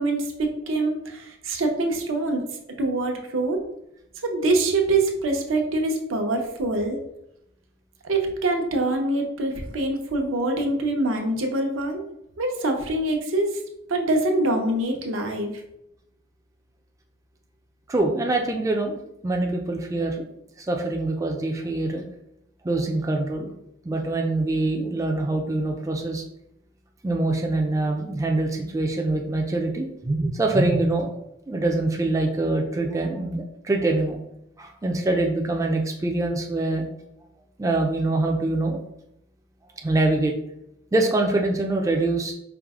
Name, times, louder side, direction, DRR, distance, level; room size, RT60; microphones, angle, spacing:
voice 1, 0.0-2.4 2.8-3.6 4.2-7.0 8.0-12.0 12.4-13.6 13.9-15.6, right 2 dB, 80° right, 3 dB, 0.7 m, -24 dB
voice 2, 17.9-20.3 20.6-22.0 22.6-23.5 23.8-26.2 27.0-31.1 31.5-34.2 34.6-36.9 37.6-38.8 39.8-40.3 40.9-42.3, right 2 dB, 15° right, 2 dB, 0.3 m, -24 dB
4.6 x 2.0 x 3.5 m, 0.80 s
head